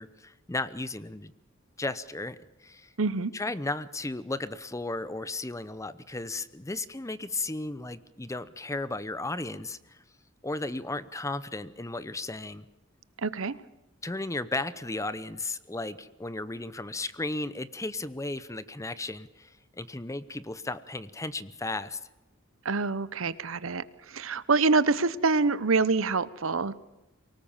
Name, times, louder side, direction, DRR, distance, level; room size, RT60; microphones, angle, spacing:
voice 1, 0.0-1.3 1.8-2.9 3.3-10.0 10.4-12.7 14.0-22.0, left 2 dB, 15° left, 15 dB, 0.8 m, -35 dB
voice 2, 3.0-3.3 13.2-13.6 22.6-26.8, right 4 dB, 75° right, 16 dB, 0.9 m, -26 dB
24.0 x 19.0 x 7.2 m, 1.0 s
head